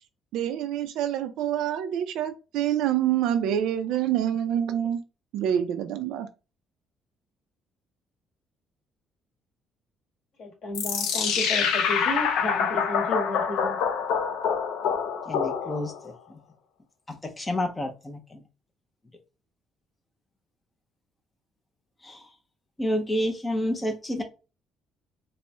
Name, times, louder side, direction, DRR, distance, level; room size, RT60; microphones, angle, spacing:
voice 1, 0.3-5.0 5.3-6.3, right 10 dB, 85° right, 0.4 m, -26 dB
voice 2, 10.4-13.7, left 1 dB, 50° left, 1.8 m, -32 dB
sound 1, 10.7-16.0, left 7 dB, 80° left, 0.6 m, -26 dB
voice 3, 15.3-16.1 17.2-18.2 22.0-22.2 22.8-24.2, left 1 dB, 10° left, 0.5 m, -29 dB
4.1 x 2.0 x 3.3 m
cardioid pair, 160°, 0 cm